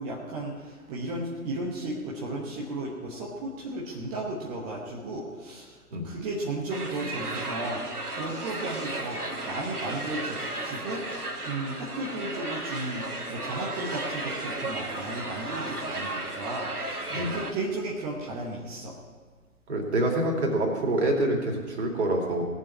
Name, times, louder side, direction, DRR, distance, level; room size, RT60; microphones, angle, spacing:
voice 1, 0.0-19.0, right 2 dB, 15° right, -3 dB, 1.0 m, -34 dB
sound 1, 6.7-17.5, right 2 dB, 80° right, 1.7 m, -34 dB
voice 2, 19.7-22.4, right 1 dB, 45° right, 1 dB, 3.0 m, -26 dB
18.0 x 7.1 x 8.5 m, 1.5 s
figure-of-eight pair, 130°, 45 cm